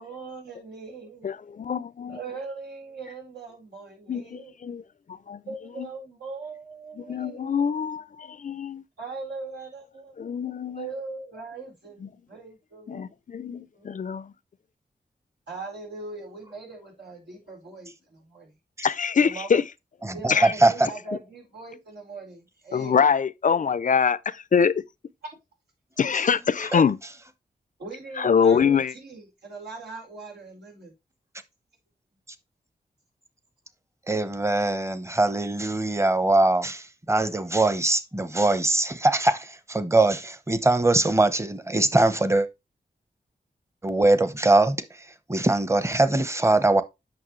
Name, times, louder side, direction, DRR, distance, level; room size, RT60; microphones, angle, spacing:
voice 1, 0.0-1.3 2.1-4.5 5.5-7.7 9.0-10.2 10.8-13.0 13.7-14.0 15.5-18.5 19.2-19.6 20.1-23.0 27.8-30.9, right 3 dB, 85° right, 4.3 m, -40 dB
voice 2, 1.2-2.2 4.1-4.8 5.1-5.4 5.8-5.9 7.0-8.8 10.2-10.9 12.0-12.1 12.9-14.3 18.8-19.6 20.3-20.5 22.7-24.8 26.0-27.0 28.2-28.9, left 6 dB, 50° left, 0.5 m, -24 dB
voice 3, 20.0-20.9 26.7-26.8 34.1-42.5 43.8-46.8, right 2 dB, 15° right, 0.9 m, -22 dB
8.8 x 6.0 x 3.1 m
cardioid pair, 75°, 17 cm